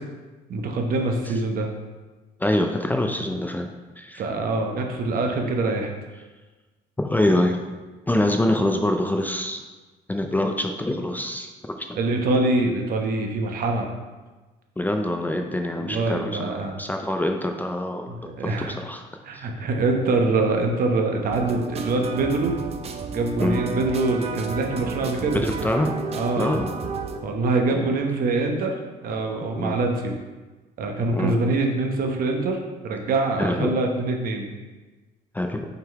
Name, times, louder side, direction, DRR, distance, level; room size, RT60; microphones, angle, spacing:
voice 1, 0.5-1.7 4.1-5.9 11.9-13.9 15.7-16.8 18.1-18.8 19.2-22.6 23.1-25.4 26.1-26.5 27.2-28.7 29.0-30.1 30.8-34.5, right 3 dB, 60° right, 2 dB, 1.0 m, -24 dB
voice 2, 2.4-3.7 4.0-4.2 7.0-7.6 8.1-9.6 10.1-11.5 11.8-11.9 14.8-19.1 19.3-19.4 23.4-23.7 25.3-25.9 26.4-26.7 27.7-27.9 29.6-29.7 31.1-31.3 33.4-33.8 35.3-35.7, left 1 dB, 10° left, 3 dB, 0.4 m, -25 dB
sound 1, 21.3-27.2, right 4 dB, 35° right, 0.5 m, -32 dB
5.8 x 3.9 x 4.6 m, 1.2 s
cardioid pair, 110°, 17 cm